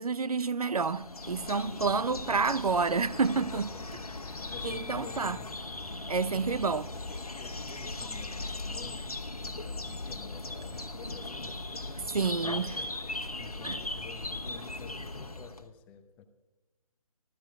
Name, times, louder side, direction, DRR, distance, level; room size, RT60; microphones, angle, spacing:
voice 1, 0.0-3.7 4.6-5.4 6.1-6.9 12.1-12.7 13.6-13.8, right 4 dB, 80° right, 0.5 m, -29 dB
sound 1, 0.8-15.7, left 2 dB, 90° left, 1.2 m, -38 dB
voice 2, 3.2-5.5 6.3-6.5 6.9-16.3, left 7 dB, 10° left, 0.5 m, -50 dB
30.0 x 14.0 x 2.4 m
figure-of-eight pair, 145°, 19 cm